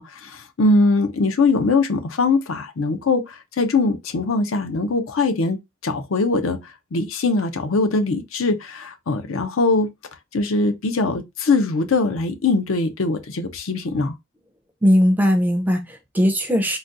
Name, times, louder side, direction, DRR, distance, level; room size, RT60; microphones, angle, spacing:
voice 1, 0.0-5.6 5.8-6.6 6.9-9.9 10.3-14.1, left 3 dB, 85° left, 0.6 m, -21 dB
voice 2, 14.8-16.8, equal, 10° right, 0.4 m, -18 dB
3.9 x 2.3 x 2.5 m
head